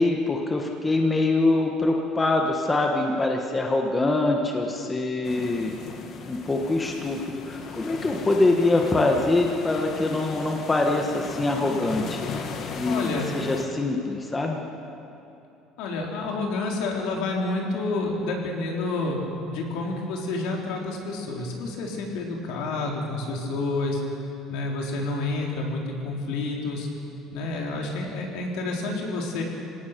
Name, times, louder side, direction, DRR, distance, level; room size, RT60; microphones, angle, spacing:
voice 1, 0.0-5.7 6.3-12.3 12.7-14.6, left 2 dB, 10° left, 2 dB, 1.3 m, -24 dB
sound 1, 5.2-13.6, left 5 dB, 35° left, 1.7 m, -37 dB
voice 2, 12.8-13.3 15.8-24.0 24.5-26.9 27.3-29.4, left 2 dB, 70° left, -1 dB, 4.1 m, -29 dB
26.5 x 17.5 x 6.8 m, 2.8 s
cardioid pair, 175°, 0 cm